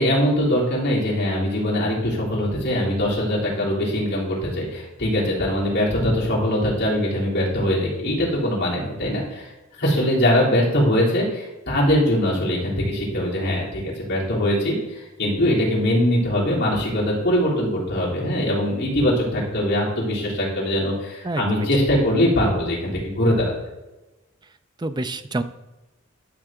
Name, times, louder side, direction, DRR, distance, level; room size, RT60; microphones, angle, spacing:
voice 1, 0.0-9.5 9.8-23.5, equal, 55° left, -6 dB, 3.5 m, -22 dB
voice 2, 21.2-21.7 24.8-25.4, right 2 dB, 20° right, 10 dB, 0.4 m, -27 dB
12.0 x 5.9 x 3.7 m, 1.0 s
head